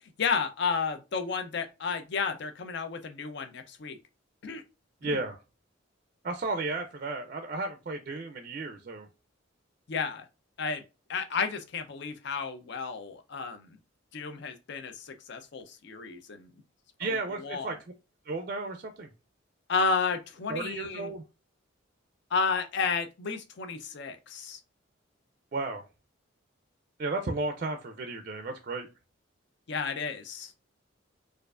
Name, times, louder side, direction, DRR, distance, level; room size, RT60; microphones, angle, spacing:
voice 1, 0.2-4.0 4.4-4.6 5.0-5.2 9.9-10.3 10.6-10.8 11.1-13.8 14.1-16.5 17.0-17.7 19.7-21.1 22.3-24.6 29.7-30.5, left 5 dB, 60° left, 0.5 m, -32 dB
voice 2, 5.0-5.4 6.2-9.1 17.0-17.8 18.3-19.1 20.5-21.2 25.5-25.8 27.0-28.9, right 3 dB, 40° right, 0.4 m, -33 dB
4.4 x 2.4 x 2.4 m
head